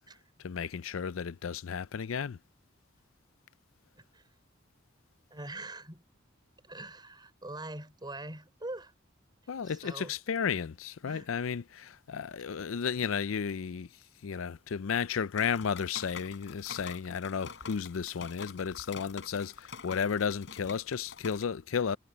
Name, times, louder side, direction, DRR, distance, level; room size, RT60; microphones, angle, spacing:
voice 1, 0.4-2.4 9.5-13.9 14.2-22.0, left 6 dB, 90° left, 0.5 m, -33 dB
voice 2, 4.0-4.3 5.3-6.0 6.6-8.9 9.6-10.2 11.0-11.3 12.5-12.6, right 2 dB, 20° right, 4.6 m, -43 dB
sound 1, 15.4-21.4, left 5 dB, 65° left, 5.3 m, -46 dB
head